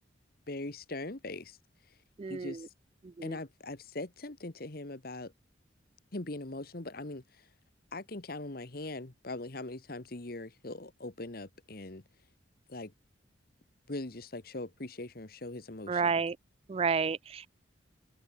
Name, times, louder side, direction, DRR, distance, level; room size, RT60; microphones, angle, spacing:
voice 1, 0.5-1.6 2.3-2.7 3.2-5.3 6.1-7.4 7.9-12.0 12.7-12.9 13.9-16.1, left 2 dB, 50° left, 1.5 m, -41 dB
voice 2, 2.2-2.7 3.0-3.4 15.9-16.4 16.7-17.5, right 5 dB, 30° right, 0.3 m, -31 dB
open air
head